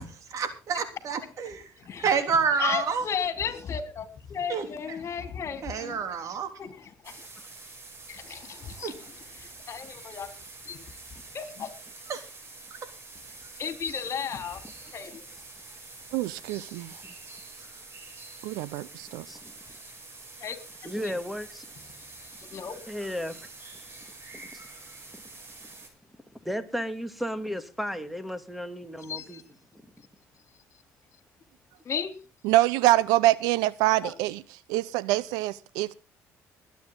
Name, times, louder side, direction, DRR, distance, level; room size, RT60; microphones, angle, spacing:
voice 1, 0.3-1.6 2.0-3.1 4.5-4.7 5.6-6.5 8.8-8.9 12.1-12.2, right 6 dB, 60° right, 3.3 m, -28 dB
voice 2, 1.8-2.1 2.6-6.0 6.6-7.2 8.1-10.3 10.7-10.8 11.3-11.7 13.6-14.6 14.9-15.3 20.4-20.6 21.0-21.1 22.0-22.8 23.9-24.0 29.1-29.4 31.9-32.1 34.0-34.2, left 7 dB, 45° left, 3.3 m, -35 dB
sound 1, 7.0-25.9, right 3 dB, 40° right, 7.0 m, -46 dB
voice 3, 16.1-16.9 18.4-19.2 32.4-34.4 34.7-35.9, right 17 dB, 90° right, 0.7 m, -25 dB
voice 4, 20.8-21.7 22.9-23.5 24.4-24.6 25.1-25.2 26.4-29.4, equal, ahead, 2.1 m, -34 dB
21.5 x 9.4 x 3.9 m
cardioid pair, 95°, 6 cm